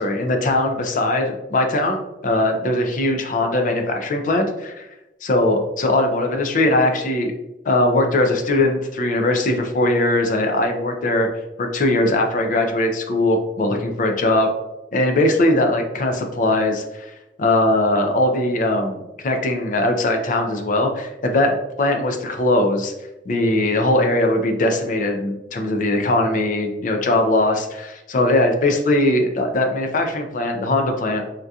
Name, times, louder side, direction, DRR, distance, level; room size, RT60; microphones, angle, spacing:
voice 1, 0.0-4.8 5.2-7.3 7.7-11.3 11.6-14.5 14.9-17.1 17.4-22.9 23.3-31.2, left 1 dB, 45° left, 4 dB, 0.4 m, -20 dB
3.6 x 2.7 x 2.3 m, 0.96 s
head